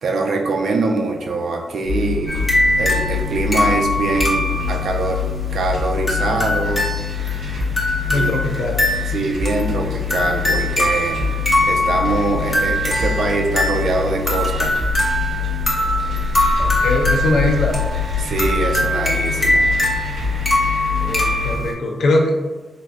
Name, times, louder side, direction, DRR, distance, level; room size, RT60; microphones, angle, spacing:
voice 1, 0.0-2.4 2.8-5.2 5.5-6.9 8.1-8.3 9.1-11.2 11.6-14.8 18.2-19.7, right 3 dB, 70° right, 3 dB, 0.4 m, -23 dB
sound 1, 1.9-21.5, left 7 dB, 90° right, 0.8 m, -25 dB
sound 2, 2.3-21.7, left 1 dB, 20° left, 0.6 m, -22 dB
voice 2, 8.1-8.8 16.6-17.7 21.0-22.3, left 1 dB, 75° left, 2 dB, 0.5 m, -21 dB
3.4 x 2.6 x 2.3 m, 1.2 s
wide cardioid pair, 145°, 0 cm